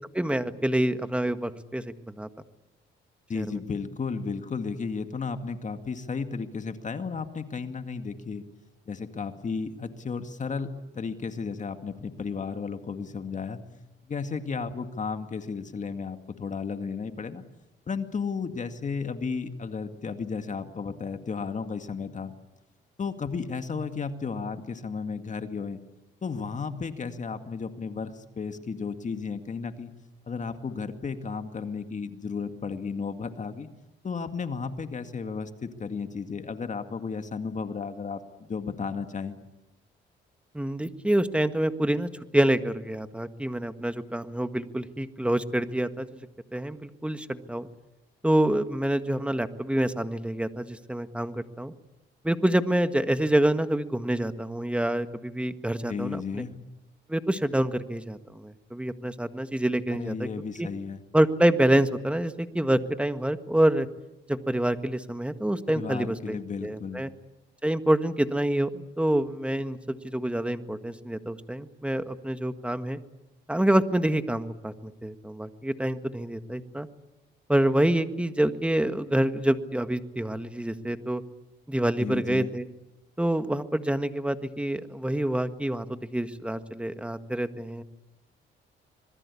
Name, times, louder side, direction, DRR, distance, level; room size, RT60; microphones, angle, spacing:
voice 1, 0.1-2.3 3.4-3.5 40.5-46.3 46.5-47.7 48.2-51.7 52.2-56.4 57.1-60.3 60.6-60.7 61.1-63.9 64.3-67.1 67.6-73.0 73.5-76.9 77.5-81.2 81.7-82.7 83.2-87.8, right 1 dB, 5° right, 10 dB, 1.6 m, -27 dB
voice 2, 3.3-8.4 8.9-13.6 14.0-17.4 17.9-22.3 23.0-25.8 26.2-29.9 30.3-33.7 34.0-39.4 55.9-56.6 59.9-61.0 65.7-67.0 82.0-82.5, left 5 dB, 40° left, 7 dB, 2.1 m, -33 dB
26.0 x 21.5 x 8.5 m, 0.95 s
cardioid pair, 90°, 20 cm